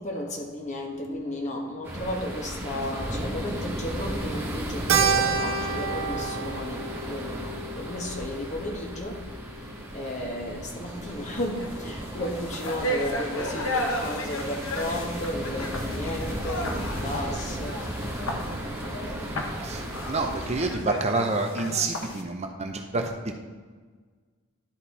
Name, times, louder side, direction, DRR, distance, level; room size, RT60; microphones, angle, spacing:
voice 1, 0.0-18.1, left 1 dB, 35° left, 0 dB, 1.1 m, -34 dB
sound 1, 1.8-20.7, right 1 dB, 10° right, 1.1 m, -35 dB
Keyboard (musical), 4.9-9.5, right 6 dB, 65° right, 0.7 m, -29 dB
sound 2, 10.9-11.1 11.4-22.2, left 1 dB, 75° left, 0.9 m, -34 dB
voice 2, 19.6-23.3, right 3 dB, 30° right, 4 dB, 0.6 m, -28 dB
11.5 x 4.1 x 4.1 m, 1.5 s
head